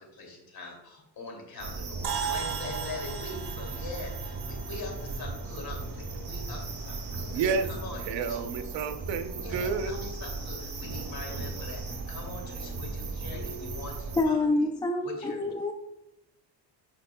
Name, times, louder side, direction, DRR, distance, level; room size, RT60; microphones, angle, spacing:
voice 1, 0.0-7.3 7.6-8.4 9.4-14.4 15.0-15.4, left 3 dB, 55° left, 0 dB, 2.7 m, -42 dB
sound 1, 1.6-14.2, right 3 dB, 55° right, 2.0 m, -37 dB
sound 2, 2.0-6.6, right 7 dB, 70° right, 1.4 m, -38 dB
voice 2, 7.3-7.7 8.0-9.9, right 5 dB, 90° right, 8 dB, 0.9 m, -30 dB
voice 3, 14.2-15.7, left 2 dB, 10° left, 5 dB, 0.3 m, -27 dB
10.0 x 6.0 x 2.2 m, 0.93 s
cardioid pair, 140°, 43 cm